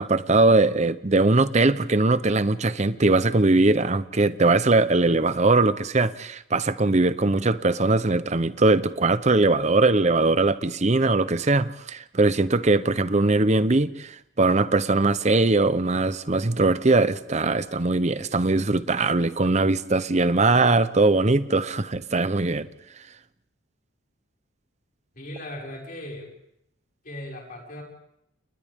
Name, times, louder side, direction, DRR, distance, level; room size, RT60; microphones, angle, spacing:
voice 1, 0.0-22.7, right 2 dB, 35° right, 14 dB, 0.8 m, -21 dB
voice 2, 25.2-26.3 27.0-27.8, left 1 dB, 45° left, -1 dB, 6.0 m, -38 dB
30.0 x 29.0 x 3.7 m, 0.77 s
head